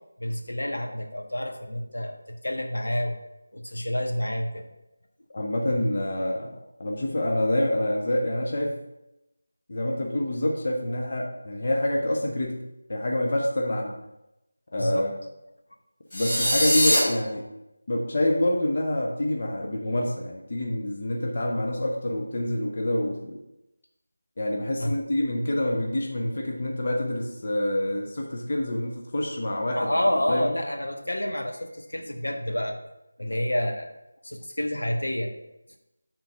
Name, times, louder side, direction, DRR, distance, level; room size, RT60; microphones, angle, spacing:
voice 1, 0.2-3.2 3.5-4.6 14.8-15.0 24.8-24.9 29.7-32.8 33.2-33.9 34.2-35.3, left 1 dB, 85° left, 3 dB, 1.3 m, -28 dB
voice 2, 5.3-8.8 9.7-14.0 14.7-15.1 16.1-17.4 17.9-23.4 24.4-30.5, left 1 dB, 45° left, 1 dB, 0.8 m, -27 dB
sound 1, 16.1-17.0, equal, 25° left, 2.5 m, -22 dB
6.9 x 3.9 x 5.5 m, 0.91 s
figure-of-eight pair, 170°, 0 cm